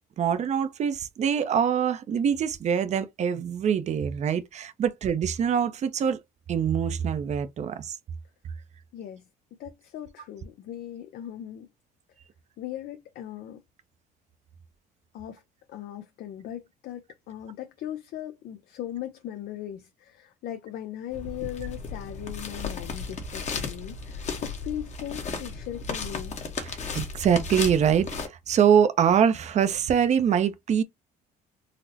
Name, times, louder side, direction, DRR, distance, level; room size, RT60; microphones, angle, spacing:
voice 1, 0.2-6.2 6.5-7.9 26.6-30.8, right 8 dB, 40° right, 0.5 m, -24 dB
voice 2, 8.9-11.7 12.6-13.6 15.1-15.4 15.7-26.4, left 12 dB, 65° left, 0.5 m, -38 dB
sound 1, 21.1-28.3, left 4 dB, 45° left, 1.0 m, -35 dB
4.0 x 2.0 x 2.7 m
cardioid pair, 110°, 17 cm